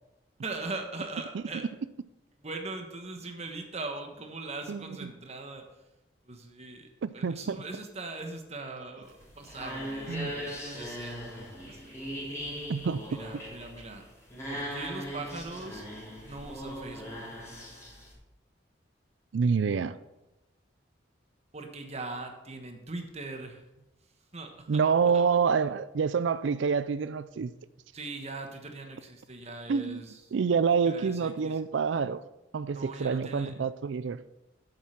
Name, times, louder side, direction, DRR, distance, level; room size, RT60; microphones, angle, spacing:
voice 1, 0.4-1.7 2.4-5.6 6.3-6.9 7.1-12.0 13.1-14.0 14.5-15.8 16.2-17.2 21.5-23.6 24.3-24.8 27.9-30.2 30.9-31.6 32.7-33.5, right 3 dB, 35° right, 1.3 m, -40 dB
voice 2, 4.7-5.1 7.0-7.6 10.1-10.3 12.7-13.2 19.3-20.0 24.7-27.5 29.7-32.2 32.5-34.2, right 5 dB, 80° right, 0.4 m, -27 dB
sound 1, 9.0-18.1, equal, 15° left, 3.4 m, -39 dB
8.4 x 7.7 x 5.8 m
head